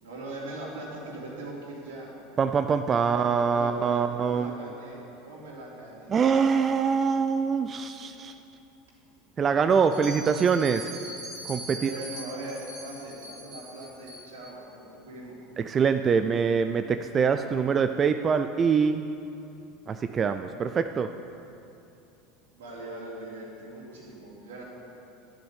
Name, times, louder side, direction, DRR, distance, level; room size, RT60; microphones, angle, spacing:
voice 1, 0.0-2.1 2.8-6.1 11.8-15.4 22.5-24.6, right 1 dB, 85° right, -4 dB, 3.0 m, -41 dB
voice 2, 2.4-4.7 6.1-8.4 9.4-10.9 11.4-11.9 15.6-19.1 19.9-21.2, right 6 dB, 30° right, 8 dB, 0.4 m, -24 dB
Bell, 9.9-14.5, right 1 dB, 55° right, 2.6 m, -42 dB
10.0 x 6.3 x 8.3 m, 2.7 s
hypercardioid pair, 90°, 0 cm